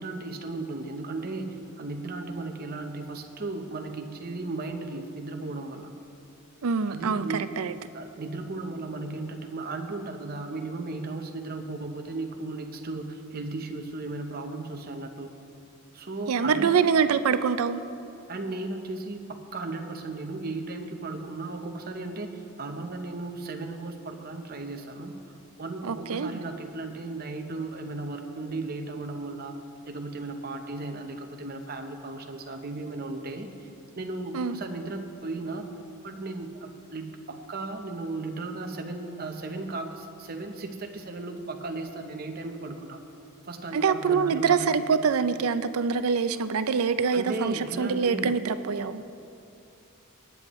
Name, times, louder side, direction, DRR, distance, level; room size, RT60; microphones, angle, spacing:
voice 1, 0.0-5.9 6.9-7.5 7.9-15.3 15.9-16.8 18.3-25.1 25.6-29.6 29.9-33.5 34.0-35.7 36.0-43.0 43.4-44.9 47.1-48.3, right 2 dB, 45° right, 4 dB, 0.8 m, -35 dB
voice 2, 6.6-7.7 16.3-17.8 25.8-26.4 34.3-34.6 43.7-49.0, right 6 dB, 90° right, 12 dB, 0.5 m, -25 dB
19.0 x 9.3 x 3.1 m, 2.7 s
head